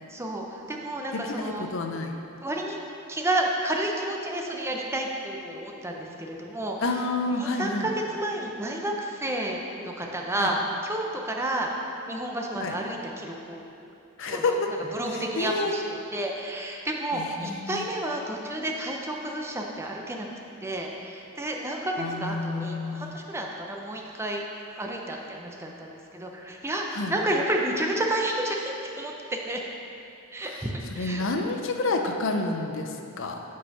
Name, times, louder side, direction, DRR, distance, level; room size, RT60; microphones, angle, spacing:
voice 1, 0.1-1.7 2.4-2.8 3.1-11.7 12.1-13.9 14.2-20.3 20.6-24.5 24.8-29.6 30.3-31.2, right 1 dB, 10° right, 0 dB, 0.5 m, -31 dB
voice 2, 1.1-2.1 6.8-7.8 10.4-10.5 12.6-12.7 14.2-14.7 15.4-15.7 17.1-17.8 22.0-23.2 27.0-27.1 31.0-33.4, left 3 dB, 60° left, 4 dB, 0.6 m, -29 dB
5.4 x 5.3 x 5.5 m, 2.7 s
head